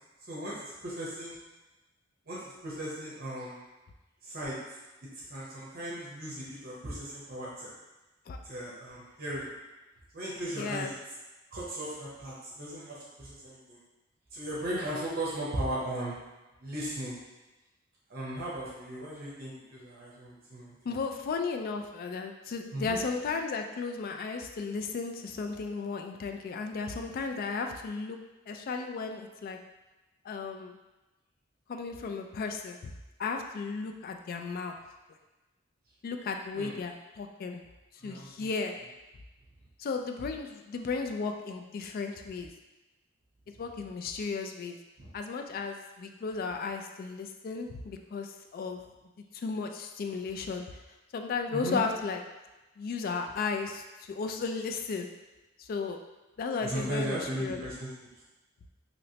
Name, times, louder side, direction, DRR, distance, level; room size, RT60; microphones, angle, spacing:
voice 1, 0.3-1.4 2.3-3.6 4.2-4.6 5.3-7.7 8.4-9.5 10.1-10.9 11.5-13.8 14.3-16.1 16.6-17.2 18.1-21.0 22.7-23.0 36.5-36.7 38.0-38.5 45.0-45.1 51.5-51.8 56.6-58.1, right 1 dB, 50° right, -7 dB, 0.8 m, -37 dB
voice 2, 10.6-10.9 20.9-28.2 28.5-29.6 30.3-30.7 31.7-32.8 33.2-34.7 36.0-37.6 38.0-38.7 39.8-42.5 43.6-44.8 45.1-48.8 49.3-50.6 51.1-52.2 52.8-53.8 54.1-55.1 55.6-56.0 56.4-57.6, left 4 dB, 50° left, 4 dB, 0.3 m, -34 dB
3.1 x 3.0 x 2.8 m, 1.1 s
head